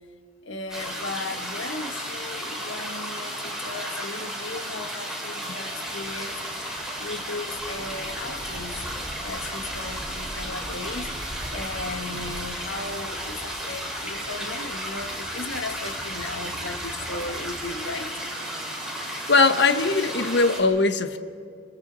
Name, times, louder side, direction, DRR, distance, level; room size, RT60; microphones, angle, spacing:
voice 1, 0.4-8.8 9.2-18.1, left 3 dB, 80° left, 6 dB, 1.5 m, -36 dB
sound 1, 0.7-20.6, equal, 5° right, 5.2 m, -34 dB
sound 2, 5.8-17.7, equal, 40° left, 7.2 m, -49 dB
sound 3, 7.6-12.6, equal, 50° right, 4.7 m, -41 dB
voice 2, 19.0-21.2, left 3 dB, 60° left, 9 dB, 1.2 m, -21 dB
29.0 x 26.5 x 4.0 m, 2.4 s
head